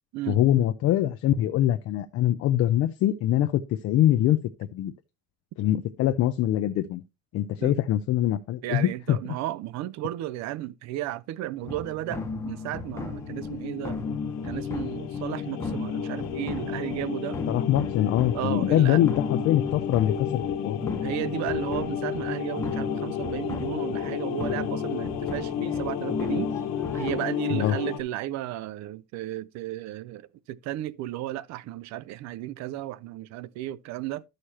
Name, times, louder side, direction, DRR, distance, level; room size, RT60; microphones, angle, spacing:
voice 1, 0.3-4.4 4.7-4.9 5.6-7.0 7.3-9.2 17.5-21.0 27.5-27.8, left 12 dB, 40° left, 0.4 m, -23 dB
voice 2, 8.6-14.0 14.4-17.4 18.3-19.0 21.0-26.5 26.9-34.2, right 14 dB, 50° right, 0.4 m, -34 dB
sound 1, 11.6-27.1, left 3 dB, 10° left, 0.8 m, -36 dB
sound 2, 12.9-28.0, left 9 dB, 60° left, 1.2 m, -32 dB
12.5 x 6.5 x 2.8 m
cardioid pair, 180°, 36 cm